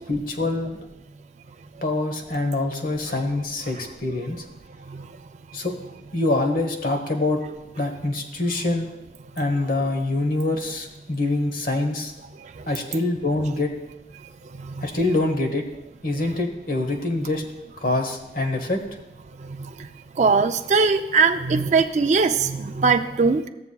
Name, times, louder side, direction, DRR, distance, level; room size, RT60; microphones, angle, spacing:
voice 1, 0.1-0.8 1.8-4.4 5.5-5.7 6.1-7.4 7.8-8.9 9.4-12.1 12.7-13.7 14.8-15.6 16.0-17.4 17.8-18.8, left 2 dB, 50° left, 4 dB, 1.0 m, -25 dB
voice 2, 4.8-5.2 12.4-12.7 14.4-14.9 19.4-19.9 20.1-23.5, right 4 dB, 40° right, 5 dB, 0.3 m, -21 dB
15.5 x 6.9 x 2.3 m, 0.98 s
head